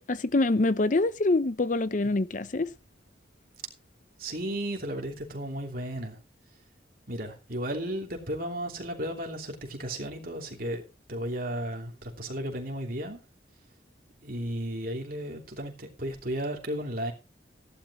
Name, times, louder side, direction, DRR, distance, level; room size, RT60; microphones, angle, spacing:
voice 1, 0.0-2.7, left 2 dB, 40° left, 0.6 m, -25 dB
voice 2, 4.2-6.2 7.1-10.8 11.1-13.2 14.2-17.1, right 1 dB, 50° right, 3.0 m, -34 dB
15.5 x 11.5 x 3.0 m
head